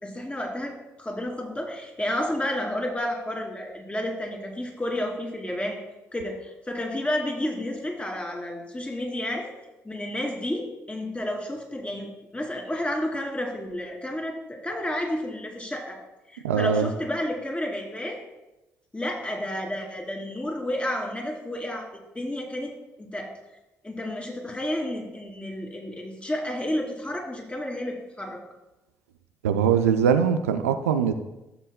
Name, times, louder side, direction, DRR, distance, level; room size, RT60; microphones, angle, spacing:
voice 1, 0.0-5.8 6.1-9.5 9.8-12.1 12.3-16.0 16.3-18.2 18.9-21.9 22.1-22.7 23.0-23.3 23.8-28.4, left 1 dB, 15° left, 0 dB, 2.6 m, -31 dB
voice 2, 16.4-16.9 29.4-31.1, right 7 dB, 85° right, 8 dB, 0.5 m, -22 dB
14.5 x 7.5 x 2.2 m, 0.97 s
figure-of-eight pair, 45°, 7 cm